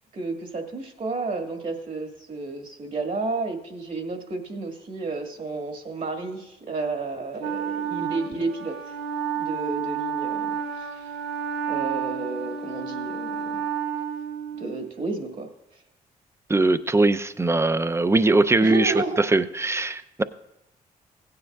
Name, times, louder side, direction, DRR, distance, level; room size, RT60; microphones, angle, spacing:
voice 1, 0.1-9.0 9.4-11.1 11.7-13.7 14.6-15.5 18.6-19.2, right 3 dB, 55° right, 3 dB, 1.8 m, -32 dB
Wind instrument woodwind instrument, 7.4-14.9, right 7 dB, 85° right, 0.6 m, -30 dB
voice 2, 16.5-20.2, right 2 dB, 15° right, 12 dB, 0.5 m, -21 dB
16.5 x 9.5 x 2.4 m, 0.86 s
supercardioid pair, 55°, 17 cm